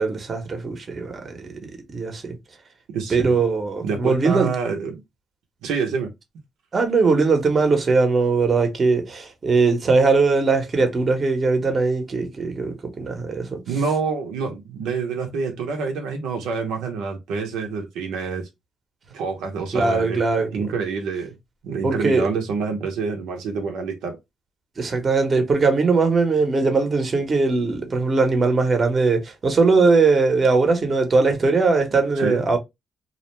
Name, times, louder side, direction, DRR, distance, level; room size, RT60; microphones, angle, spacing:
voice 1, 0.0-2.4 3.1-4.5 6.7-13.6 19.7-20.6 21.8-22.3 24.8-32.6, right 4 dB, 35° right, 0.8 m, -20 dB
voice 2, 2.9-3.3 3.8-5.0 5.6-6.1 13.7-18.5 19.1-20.2 20.5-21.4 21.6-24.2 32.2-32.4, right 5 dB, 90° right, 0.6 m, -27 dB
2.4 x 2.1 x 3.0 m
cardioid pair, 90°, 0 cm